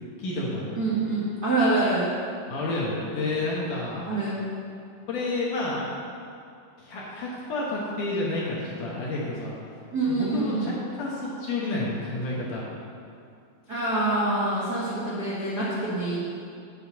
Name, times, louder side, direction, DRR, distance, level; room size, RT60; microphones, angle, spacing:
voice 1, 0.2-0.8 2.5-4.0 5.1-5.9 6.8-9.6 10.1-12.6, left 2 dB, 65° left, -5 dB, 2.2 m, -30 dB
voice 2, 0.7-2.1 4.0-4.4 9.9-10.7 13.7-16.3, right 2 dB, 65° right, -9 dB, 0.9 m, -26 dB
9.5 x 5.1 x 7.1 m, 2.4 s
omnidirectional pair, 4.9 m